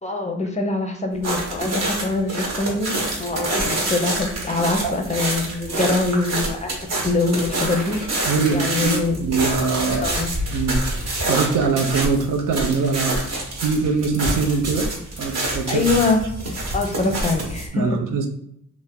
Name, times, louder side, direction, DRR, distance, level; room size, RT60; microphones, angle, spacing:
voice 1, 0.0-2.9 3.2-3.6 3.9-8.0 8.5-9.2 10.0-10.3 15.7-16.2 16.7-17.9, left 3 dB, 25° left, 3 dB, 0.5 m, -23 dB
sound 1, 1.2-17.7, right 1 dB, 55° right, 1.0 m, -27 dB
voice 2, 8.2-8.9 9.2-10.1 10.5-13.2 13.6-14.9 15.2-16.0 17.7-18.3, right 4 dB, 90° right, 4 dB, 0.6 m, -22 dB
2.8 x 2.0 x 3.5 m, 0.72 s
cardioid pair, 105°, 31 cm